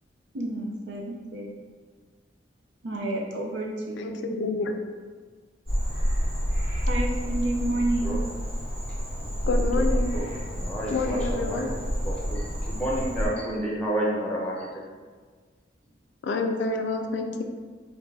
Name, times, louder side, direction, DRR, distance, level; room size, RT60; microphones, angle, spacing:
voice 1, 0.3-1.5 2.8-4.4 6.9-8.2, right 1 dB, 70° right, -1 dB, 0.6 m, -30 dB
voice 2, 4.0-4.8 9.5-10.2 10.9-11.7 16.2-17.4, left 3 dB, 65° left, 5 dB, 0.3 m, -28 dB
Frog, 5.6-13.3, equal, 55° right, 1.3 m, -28 dB
voice 3, 7.7-8.2 9.4-14.7, right 1 dB, 5° left, -6 dB, 0.7 m, -31 dB
3.5 x 2.2 x 3.9 m, 1.5 s
head